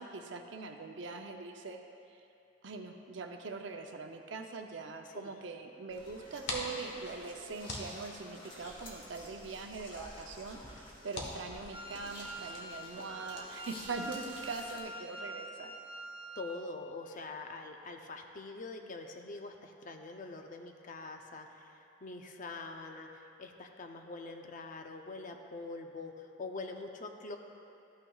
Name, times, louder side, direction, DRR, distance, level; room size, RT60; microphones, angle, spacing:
voice 1, 0.0-1.8 2.1-2.2 2.6-15.7, right 4 dB, 70° right, 4 dB, 0.6 m, -42 dB
sound 1, 5.9-14.8, left 1 dB, 30° left, 1.3 m, -51 dB
sound 2, 6.1-12.4, left 2 dB, 70° left, 1.3 m, -46 dB
Wind instrument woodwind instrument, 11.7-16.6, right 2 dB, 30° right, 0.7 m, -45 dB
voice 2, 16.4-27.4, left 3 dB, 45° left, 4 dB, 0.6 m, -44 dB
13.5 x 8.9 x 2.4 m, 2.7 s
head